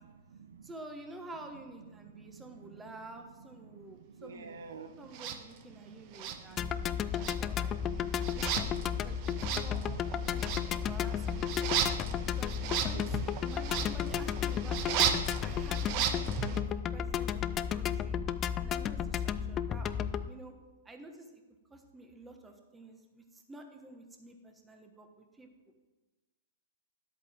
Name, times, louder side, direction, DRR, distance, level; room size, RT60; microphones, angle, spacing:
voice 1, 0.0-0.7 1.9-5.3 5.6-7.4 7.8-12.3 12.6-13.9 15.3-15.9, right 5 dB, 75° right, 10 dB, 0.8 m, -52 dB
voice 2, 0.6-4.6 5.0-6.6 7.1-9.2 9.5-10.0 10.3-11.5 12.0-13.1 13.4-18.2 18.6-20.5 20.8-21.3 21.7-25.7, right 2 dB, 10° right, 4 dB, 1.3 m, -50 dB
sound 1, 5.1-5.4 6.1-6.9 7.1-16.6, right 8 dB, 45° right, 0.9 m, -35 dB
sound 2, 6.6-20.3, left 8 dB, 25° left, 0.4 m, -33 dB
11.0 x 8.1 x 3.7 m, 1.2 s
hypercardioid pair, 120°, 0 cm